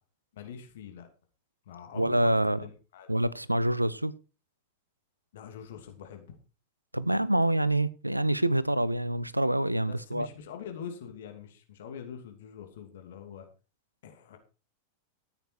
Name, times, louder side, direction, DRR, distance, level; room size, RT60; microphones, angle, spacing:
voice 1, 0.3-1.1 1.7-3.1 5.3-6.4 9.9-13.5 14.0-14.4, left 7 dB, 60° left, 2.6 m, -44 dB
voice 2, 1.9-2.6 3.1-4.1 6.9-10.3, right 1 dB, 85° right, 0.6 m, -26 dB
13.5 x 8.9 x 4.6 m
figure-of-eight pair, 90°, 0 cm